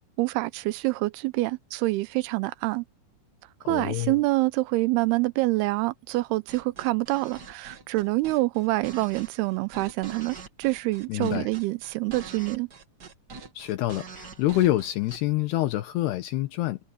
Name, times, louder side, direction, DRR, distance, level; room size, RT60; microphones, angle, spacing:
voice 1, 0.2-2.8 3.7-12.7, right 20 dB, 80° right, 2.6 m, -26 dB
voice 2, 3.6-4.2 11.1-11.5 13.6-16.8, left 15 dB, 80° left, 3.0 m, -26 dB
sound 1, 6.5-15.2, right 5 dB, 60° right, 1.0 m, -44 dB
omnidirectional pair, 4.8 m